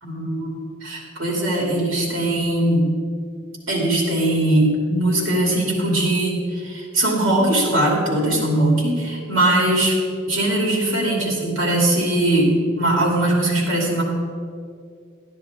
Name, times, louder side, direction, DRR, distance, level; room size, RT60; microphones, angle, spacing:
voice 1, 0.0-2.8 3.7-10.0 10.3-14.0, right 1 dB, 80° right, -2 dB, 2.7 m, -20 dB
12.5 x 10.5 x 3.6 m, 2.3 s
head